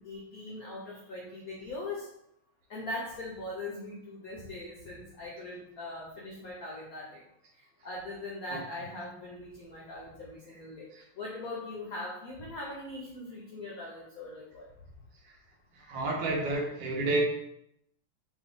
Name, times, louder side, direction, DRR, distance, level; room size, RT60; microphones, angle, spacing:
voice 1, 0.0-2.1 2.7-7.2 7.8-10.9 11.2-14.7, left 2 dB, 65° left, -4 dB, 0.9 m, -40 dB
voice 2, 15.7-17.2, right 2 dB, 70° right, -1 dB, 1.5 m, -31 dB
3.2 x 3.1 x 3.8 m, 0.77 s
omnidirectional pair, 2.3 m